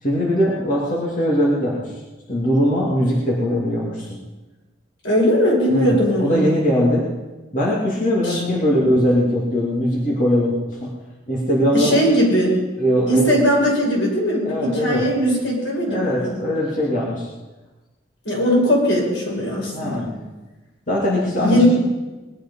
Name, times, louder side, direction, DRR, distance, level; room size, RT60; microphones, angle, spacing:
voice 1, 0.0-1.9 2.3-4.2 5.7-7.1 7.5-11.0 11.3-12.0 12.8-13.4 14.4-15.1 15.9-17.3 19.7-20.2 20.9-21.6, equal, 45° left, -5 dB, 2.6 m, -20 dB
voice 2, 5.0-6.4 8.2-8.4 11.7-12.6 13.1-16.3 18.2-20.0 21.4-21.7, equal, 80° left, -2 dB, 5.7 m, -19 dB
20.0 x 11.5 x 5.6 m, 1.2 s
head